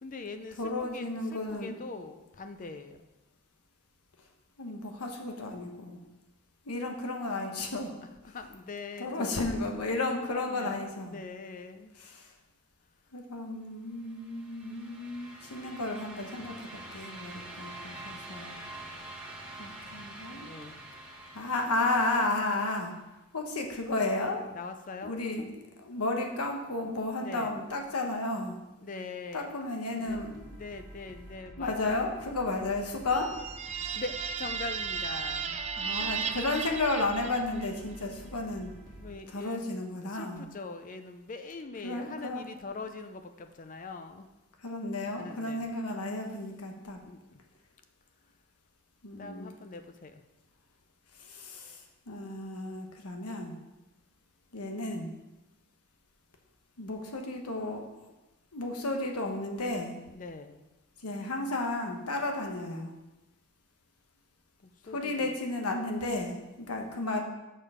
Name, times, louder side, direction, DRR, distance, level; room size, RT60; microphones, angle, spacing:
voice 1, 0.0-3.1 8.2-9.5 10.2-10.8 11.1-11.9 20.3-20.8 24.5-25.5 27.2-27.6 28.8-29.5 29.9-32.0 33.9-35.6 39.0-39.6 40.0-44.3 45.2-45.7 46.1-46.2 47.0-47.4 49.2-50.2 60.1-60.7 64.6-65.3, left 3 dB, 35° left, 8 dB, 0.5 m, -43 dB
voice 2, 0.6-1.8 4.6-6.0 6.6-7.9 9.0-11.2 12.0-12.3 13.1-18.6 19.6-20.5 21.3-22.9 23.3-24.4 25.0-25.5 25.8-28.6 29.3-30.4 31.6-33.3 35.8-38.7 39.3-40.4 41.8-42.5 44.6-47.0 49.0-49.5 51.2-53.5 54.5-55.1 56.8-58.1 58.5-60.0 61.0-62.9 64.9-67.2, left 2 dB, 90° left, 2 dB, 1.2 m, -33 dB
sound 1, 14.0-22.9, right 2 dB, 5° right, 1.1 m, -46 dB
sound 2, 30.1-39.1, equal, 20° left, 1.7 m, -49 dB
sound 3, 33.1-37.8, right 6 dB, 30° right, 0.3 m, -35 dB
6.7 x 6.5 x 4.9 m, 1.0 s
head